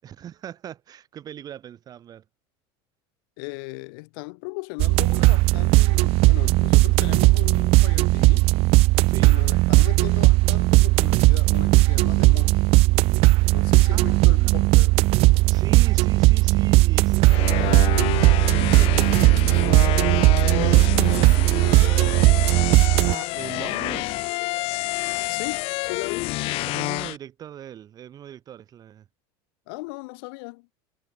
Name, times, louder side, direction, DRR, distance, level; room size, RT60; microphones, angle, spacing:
voice 1, 0.0-2.2 9.1-9.3 13.9-14.7 15.5-17.8 18.3-22.3 23.0-24.3 26.7-29.1, right 10 dB, 30° right, 5.7 m, -40 dB
voice 2, 3.4-8.5 9.2-12.8 13.5-14.9 25.3-26.3 29.7-30.7, left 30 dB, 70° left, 5.9 m, -37 dB
sound 1, 4.8-23.1, right 21 dB, 50° right, 1.2 m, -17 dB
sound 2, 17.3-27.2, left 22 dB, 45° left, 0.7 m, -28 dB
cardioid pair, 155°, 13 cm